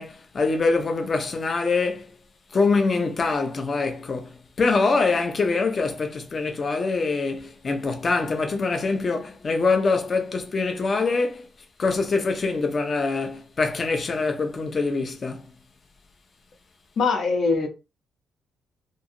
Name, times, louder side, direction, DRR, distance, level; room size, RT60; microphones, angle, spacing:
voice 1, 0.0-2.2 2.5-11.5 11.8-15.5, left 4 dB, 30° left, 0.5 m, -24 dB
voice 2, 17.0-17.7, left 4 dB, 55° left, 0.8 m, -22 dB
3.1 x 2.7 x 2.5 m
cardioid pair, 170°, 0 cm